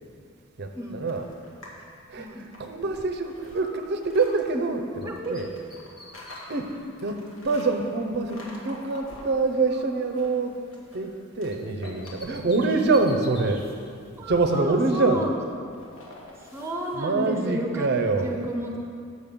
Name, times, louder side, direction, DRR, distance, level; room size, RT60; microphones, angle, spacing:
voice 1, 0.6-1.3 2.1-5.5 6.5-10.6 10.9-13.7 14.3-15.3 17.0-18.4, right 3 dB, 50° right, 6 dB, 0.5 m, -25 dB
sound 1, 1.1-1.8 2.2-4.3 5.2-7.7 8.2-9.6 9.9-11.1 11.4-12.7 13.0-17.0, left 1 dB, 70° left, 1.4 m, -47 dB
Bird, 3.5-5.0 5.3-8.8 9.1-11.2 11.5-13.6, left 1 dB, 20° left, 1.0 m, -49 dB
voice 2, 5.0-5.4 14.2-15.3 16.4-18.8, right 1 dB, 15° right, 0 dB, 0.8 m, -32 dB
6.5 x 5.2 x 7.0 m, 2.3 s
head